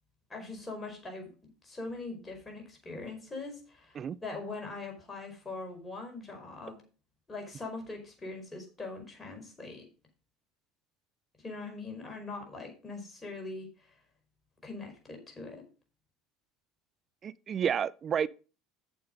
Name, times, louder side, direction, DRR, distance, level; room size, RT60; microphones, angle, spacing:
voice 1, 0.3-6.8 7.3-9.8 11.4-13.9 14.6-15.6, left 3 dB, 20° left, 5.0 m, -42 dB
voice 2, 17.2-18.3, right 8 dB, 40° right, 0.5 m, -30 dB
8.9 x 7.2 x 5.2 m
hypercardioid pair, 80°, 0 cm